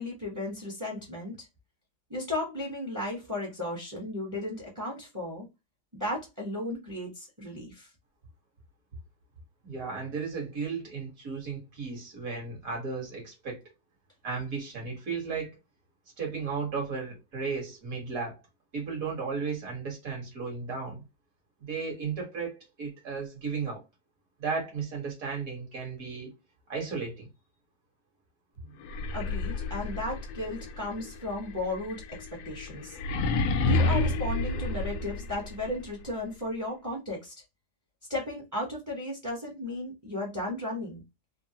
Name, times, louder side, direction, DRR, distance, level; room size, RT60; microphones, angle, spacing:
voice 1, 0.0-1.5 2.1-5.5 5.9-7.9 29.1-32.0 32.3-33.0 33.4-37.3 38.1-41.0, left 1 dB, 15° right, 0.7 m, -35 dB
voice 2, 9.6-13.6 14.2-15.6 16.2-18.4 18.7-21.0 21.6-23.8 24.4-26.4 26.7-27.3, right 5 dB, 50° right, 1.6 m, -34 dB
sound 1, 28.8-35.7, left 3 dB, 85° left, 1.3 m, -30 dB
3.5 x 2.0 x 2.8 m
omnidirectional pair, 2.0 m